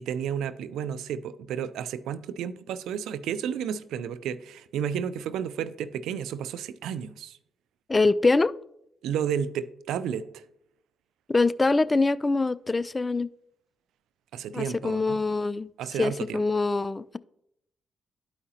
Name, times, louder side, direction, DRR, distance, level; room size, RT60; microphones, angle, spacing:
voice 1, 0.0-7.4 9.0-10.4 14.3-15.2 15.8-16.4, right 8 dB, 80° right, 0.4 m, -32 dB
voice 2, 7.9-8.6 11.3-13.3 14.5-15.7 16.0-17.2, left 3 dB, 30° left, 0.3 m, -24 dB
12.5 x 4.9 x 2.8 m
supercardioid pair, 55°, 0 cm